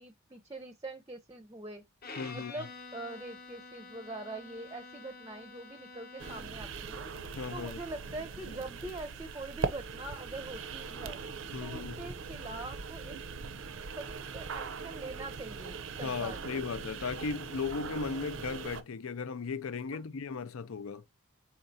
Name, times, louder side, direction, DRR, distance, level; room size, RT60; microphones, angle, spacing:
voice 1, 0.0-1.8 2.3-7.1 7.5-11.2 11.6-13.2 14.0-14.1 14.3-16.6 19.9-20.0, right 2 dB, 15° right, 0.5 m, -43 dB
Bowed string instrument, 2.0-6.7, left 4 dB, 45° left, 0.9 m, -48 dB
voice 2, 2.2-2.5 7.4-7.8 11.5-12.1 16.0-21.0, left 5 dB, 75° left, 0.5 m, -36 dB
sound 1, 6.2-18.8, right 4 dB, 60° right, 0.5 m, -40 dB
sound 2, 6.7-9.8, left 2 dB, 20° left, 0.8 m, -61 dB
4.5 x 4.4 x 2.6 m
head